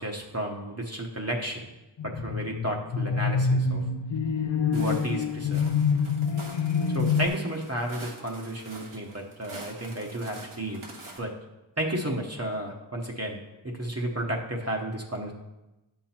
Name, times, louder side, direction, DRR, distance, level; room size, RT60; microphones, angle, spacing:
voice 1, 0.0-1.7 2.0-3.8 4.7-5.6 6.9-10.8 11.2-11.3 11.8-13.4 13.6-15.3, right 1 dB, 30° right, -1 dB, 1.0 m, -32 dB
sound 1, 2.0-7.3, left 5 dB, 65° left, 0.5 m, -26 dB
Walk footsteps, 4.7-11.2, right 2 dB, 80° right, 1.4 m, -45 dB
8.2 x 5.8 x 4.3 m, 1.0 s
wide cardioid pair, 40°, 49 cm